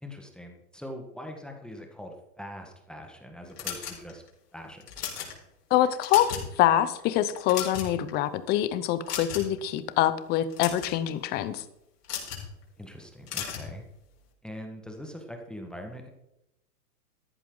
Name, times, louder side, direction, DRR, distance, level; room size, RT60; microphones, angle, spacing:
voice 1, 0.0-4.2 4.5-4.9 12.8-13.8 14.4-16.1, equal, ahead, 3 dB, 1.5 m, -42 dB
sound 1, 3.6-4.3 4.8-5.3 5.8-6.5 6.8-7.0 7.4-8.1 9.1-9.6 10.4-10.9 12.0-12.5 13.3-13.7, left 8 dB, 70° left, 4.7 m, -35 dB
voice 2, 5.7-6.3 6.6-11.6, left 12 dB, 20° left, 14 dB, 0.7 m, -25 dB
14.0 x 11.0 x 3.9 m, 0.83 s
hypercardioid pair, 135°, 48 cm